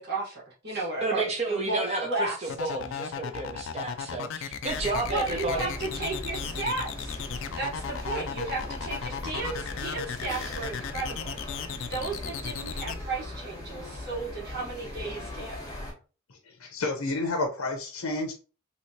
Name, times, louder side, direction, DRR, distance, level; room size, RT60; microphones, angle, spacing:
voice 1, 0.0-2.5 4.7-7.7 8.1-11.6 11.9-15.6, right 3 dB, 50° right, -5 dB, 1.3 m, -34 dB
voice 2, 1.0-5.7, right 2 dB, 30° right, 1 dB, 0.9 m, -31 dB
sound 1, 2.5-13.0, left 7 dB, 60° left, 0.4 m, -35 dB
sound 2, 4.6-15.9, left 1 dB, 15° left, 1.0 m, -39 dB
voice 3, 16.6-18.3, left 2 dB, 90° left, 3 dB, 0.7 m, -30 dB
2.9 x 2.9 x 2.8 m, 0.35 s
head